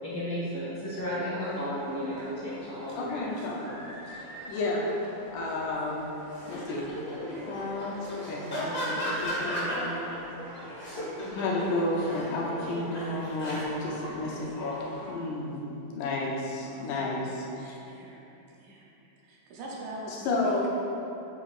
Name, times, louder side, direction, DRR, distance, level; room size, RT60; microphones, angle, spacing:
voice 1, 0.0-3.2, equal, 40° left, -10 dB, 1.6 m, -33 dB
raw recital applause loudest, 1.4-15.1, right 1 dB, 50° right, 1.3 m, -46 dB
voice 2, 2.9-3.8 4.5-4.9 5.3-6.1 6.5-6.9 7.5-10.2 11.3-17.8 20.1-20.7, left 2 dB, 75° left, -3 dB, 2.1 m, -32 dB
sound 1, 6.4-10.2 10.6-13.6, equal, 55° left, 0.5 m, -35 dB
voice 3, 16.7-18.2 18.5-18.9 19.2-20.7, right 1 dB, 75° right, -3 dB, 2.0 m, -44 dB
7.1 x 6.9 x 2.4 m, 2.9 s
omnidirectional pair, 3.8 m